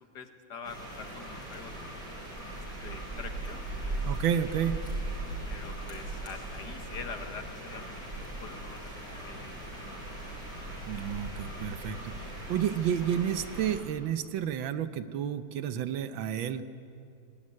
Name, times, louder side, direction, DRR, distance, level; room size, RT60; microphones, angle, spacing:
voice 1, 0.1-2.0 2.7-4.0 4.3-4.5 5.5-8.0 8.4-10.0, left 5 dB, 60° left, 6 dB, 1.9 m, -45 dB
sound 1, 0.6-13.8, right 2 dB, 60° right, 6.6 m, -39 dB
voice 2, 4.0-4.7 10.9-16.6, right 9 dB, 85° right, 11 dB, 1.6 m, -31 dB
19.5 x 17.5 x 9.7 m, 2.5 s
omnidirectional pair, 2.1 m